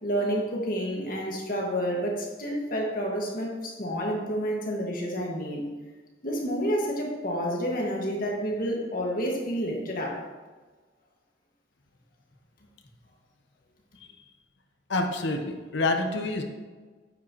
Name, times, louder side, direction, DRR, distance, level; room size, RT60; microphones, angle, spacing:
voice 1, 0.0-5.6 6.2-10.2, equal, 50° left, -1 dB, 1.8 m, -29 dB
voice 2, 14.9-16.4, left 2 dB, 80° left, 4 dB, 0.9 m, -27 dB
9.2 x 8.7 x 3.0 m, 1.3 s
head